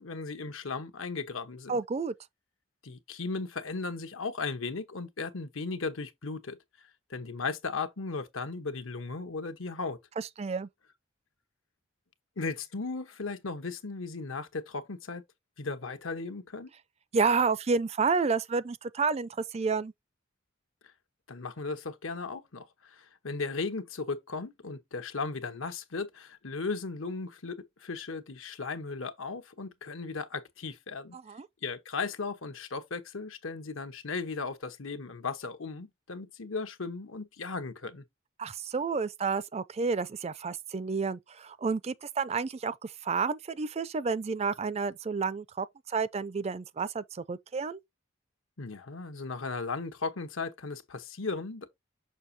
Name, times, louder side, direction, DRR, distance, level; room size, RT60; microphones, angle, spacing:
voice 1, 0.0-1.8 2.8-10.0 12.4-15.2 15.6-16.7 21.3-31.2 31.6-38.0 48.6-51.7, left 4 dB, 85° left, 1.1 m, -36 dB
voice 2, 1.7-2.1 10.2-10.7 17.1-19.9 31.1-31.5 38.4-47.8, right 4 dB, 30° right, 0.4 m, -30 dB
6.3 x 5.9 x 2.8 m
head